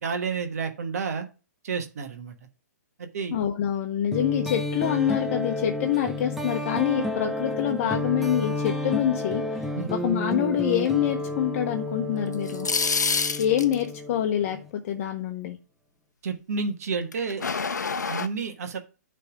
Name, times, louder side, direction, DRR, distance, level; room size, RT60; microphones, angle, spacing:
voice 1, 0.0-1.3 1.6-2.3 3.0-3.4 9.7-9.9 16.2-17.4 18.1-18.8, right 5 dB, 60° right, 6 dB, 1.2 m, -30 dB
voice 2, 3.3-12.7 13.4-15.6, left 10 dB, 45° left, 4 dB, 0.8 m, -26 dB
sound 1, 4.1-14.7, left 1 dB, ahead, 0.8 m, -31 dB
sound 2, 12.3-13.8 17.1-18.3, left 5 dB, 80° left, 0.7 m, -26 dB
9.6 x 3.4 x 4.9 m, 0.33 s
figure-of-eight pair, 120°, 9 cm